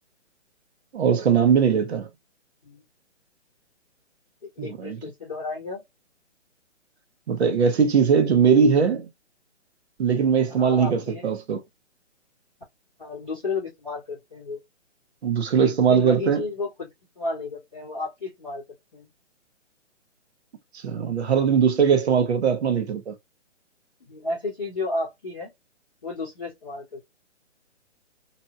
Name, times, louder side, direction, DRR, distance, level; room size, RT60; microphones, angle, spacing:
voice 1, 0.9-2.1 4.6-5.0 7.3-9.1 10.0-11.6 15.2-16.4 20.7-23.1, right 6 dB, 60° right, 0.9 m, -20 dB
voice 2, 4.4-5.8 10.5-11.3 13.0-14.6 15.5-16.9 17.1-18.6 18.9-19.1 24.0-25.5 26.0-27.1, left 3 dB, ahead, 0.4 m, -32 dB
2.9 x 2.6 x 2.2 m
hypercardioid pair, 145°, 37 cm